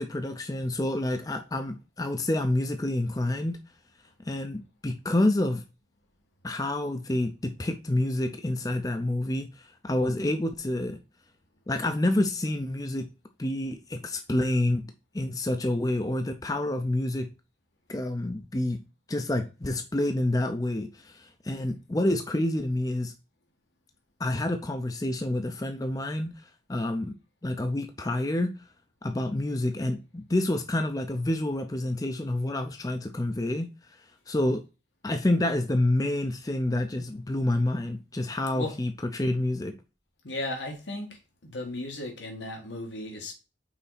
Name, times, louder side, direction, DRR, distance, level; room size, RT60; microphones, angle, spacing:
voice 1, 0.0-3.6 4.3-5.6 6.4-9.5 9.8-11.0 11.7-13.1 13.4-14.8 15.1-17.3 17.9-18.8 19.1-23.1 24.2-26.3 26.7-27.1 27.4-28.5 29.0-33.7 34.3-34.6 35.0-39.7, left 1 dB, 20° left, 0.5 m, -28 dB
voice 2, 40.2-41.2 41.4-43.3, left 1 dB, 90° left, 1.8 m, -35 dB
5.7 x 4.1 x 4.1 m
head